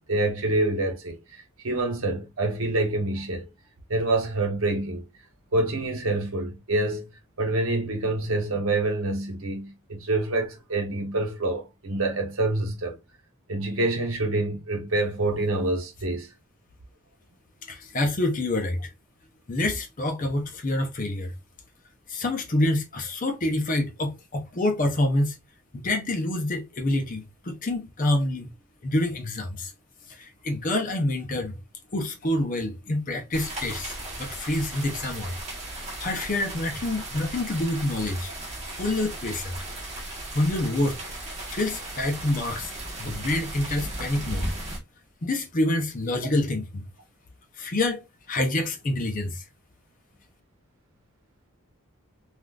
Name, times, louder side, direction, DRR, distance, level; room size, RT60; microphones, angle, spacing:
voice 1, 0.1-3.5 3.9-5.1 5.5-7.1 7.4-13.0 13.5-16.3, right 2 dB, 70° right, 0.9 m, -26 dB
voice 2, 17.6-18.9 19.5-21.3 22.1-25.4 25.7-28.5 28.8-29.7 30.1-31.6 31.9-35.3 35.7-38.3 38.8-39.5 40.3-41.0 41.5-42.7 43.0-44.5 45.2-46.8 47.6-48.0 48.3-49.4, left 1 dB, 35° left, 0.6 m, -27 dB
sound 1, 33.3-44.8, right 1 dB, 30° right, 1.1 m, -36 dB
3.6 x 2.4 x 2.3 m
head